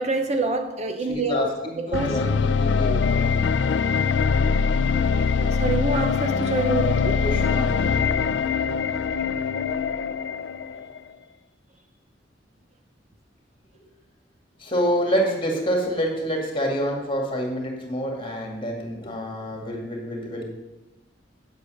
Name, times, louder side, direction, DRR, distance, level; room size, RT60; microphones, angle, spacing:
voice 1, 0.0-1.5 1.8-2.1 5.4-7.2, right 3 dB, 35° right, 6 dB, 0.7 m, -26 dB
voice 2, 1.1-3.3 7.2-8.2 14.6-20.4, equal, 30° left, 1 dB, 2.2 m, -27 dB
sound 1, 1.9-11.0, left 5 dB, 70° left, 0.4 m, -23 dB
8.6 x 8.2 x 6.4 m, 1.0 s
head